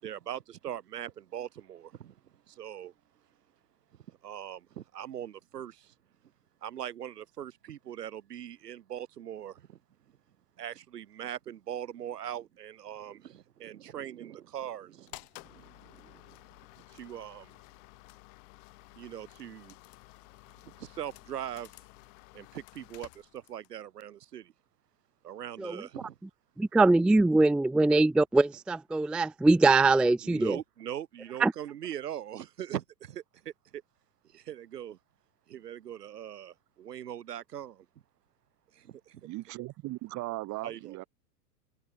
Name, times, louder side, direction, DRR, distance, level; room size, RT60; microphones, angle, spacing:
voice 1, 0.0-2.1 2.5-2.9 4.1-5.9 6.6-9.8 10.6-16.4 16.9-17.6 19.0-19.7 20.6-21.7 22.3-24.5 25.2-26.2 30.2-33.2 33.7-33.8 34.3-35.0 35.5-37.9 38.7-39.3 40.6-41.0, right 10 dB, 75° right, 3.9 m, -41 dB
sound 1, 15.1-23.8, left 35 dB, 50° left, 5.3 m, -53 dB
voice 2, 26.6-30.6 31.4-31.5, right 2 dB, ahead, 0.4 m, -23 dB
voice 3, 39.2-41.0, right 20 dB, 35° right, 1.6 m, -38 dB
hypercardioid pair, 100°, 48 cm